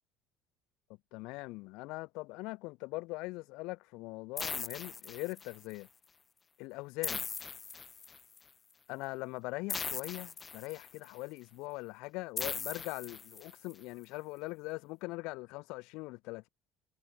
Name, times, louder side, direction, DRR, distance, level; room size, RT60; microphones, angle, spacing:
voice 1, 1.1-5.9 6.6-7.2 8.9-16.5, left 23 dB, 60° left, 0.9 m, -41 dB
sound 1, 4.4-5.7 7.0-8.4 9.7-11.1 12.4-13.7, left 5 dB, 30° left, 0.8 m, -39 dB
figure-of-eight pair, 60°, 0 cm